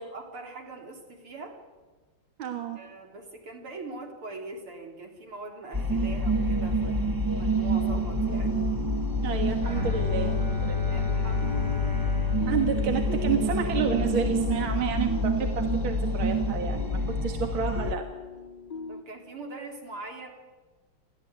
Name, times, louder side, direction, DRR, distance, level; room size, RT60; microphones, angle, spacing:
voice 1, 0.1-1.6 2.8-8.6 9.2-9.4 10.9-12.0 18.9-20.3, right 2 dB, 90° right, 2 dB, 4.4 m, -42 dB
voice 2, 2.4-2.8 9.2-11.0 12.5-18.0, right 6 dB, 70° right, 4 dB, 2.3 m, -30 dB
sound 1, 5.7-17.9, right 1 dB, 25° right, 0.5 m, -27 dB
sound 2, 7.6-19.0, left 5 dB, 60° left, 0.4 m, -41 dB
Bowed string instrument, 9.6-13.8, left 6 dB, 50° right, 5.3 m, -31 dB
29.0 x 13.5 x 9.4 m, 1.3 s
omnidirectional pair, 2.3 m